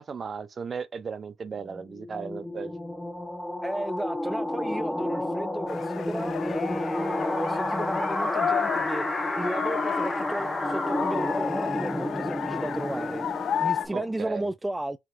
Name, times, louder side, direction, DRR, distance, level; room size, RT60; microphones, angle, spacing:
voice 1, 0.0-2.7 13.9-14.5, right 5 dB, 40° right, 0.6 m, -36 dB
sound 1, 1.6-14.3, left 1 dB, 5° left, 1.0 m, -31 dB
voice 2, 3.6-15.0, right 1 dB, 10° right, 0.3 m, -34 dB
sound 2, 5.7-13.9, left 9 dB, 65° left, 0.6 m, -32 dB
5.8 x 2.8 x 2.5 m
cardioid pair, 90°, 0 cm